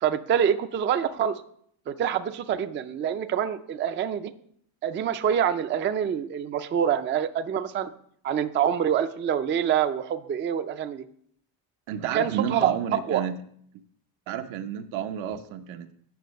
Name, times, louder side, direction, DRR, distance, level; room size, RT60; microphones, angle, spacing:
voice 1, 0.0-1.4 1.9-4.3 4.8-7.9 8.2-11.0 12.1-12.7 13.1-13.2, right 8 dB, 25° right, 10 dB, 0.4 m, -26 dB
voice 2, 11.9-13.4 14.3-15.9, right 9 dB, 85° right, 8 dB, 1.0 m, -31 dB
9.2 x 6.3 x 6.4 m, 0.65 s
cardioid pair, 165°, 47 cm